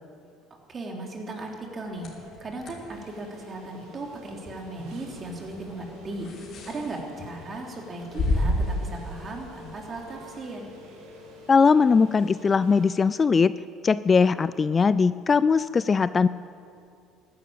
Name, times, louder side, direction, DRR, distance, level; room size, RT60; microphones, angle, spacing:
voice 1, 0.7-6.3 6.6-10.7, right 2 dB, 35° right, 0 dB, 3.3 m, -37 dB
sound 1, 1.8-10.2, left 1 dB, 50° left, 3.3 m, -33 dB
sound 2, 2.9-12.9, left 1 dB, 85° right, 4.5 m, -49 dB
voice 2, 11.5-13.5 13.8-16.3, left 5 dB, 30° left, 16 dB, 0.3 m, -20 dB
14.0 x 11.5 x 8.8 m, 2.4 s
supercardioid pair, 90°, 0 cm